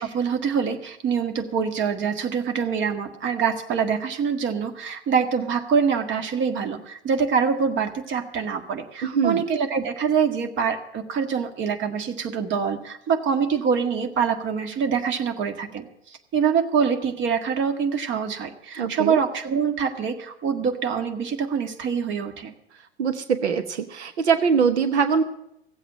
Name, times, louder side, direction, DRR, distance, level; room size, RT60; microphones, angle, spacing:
voice 1, 0.0-22.5, right 6 dB, 35° right, 6 dB, 1.8 m, -25 dB
voice 2, 9.0-9.4 18.8-19.2 23.0-25.2, right 6 dB, 75° right, 9 dB, 1.1 m, -22 dB
17.0 x 8.0 x 7.3 m, 0.78 s
hypercardioid pair, 95°, 34 cm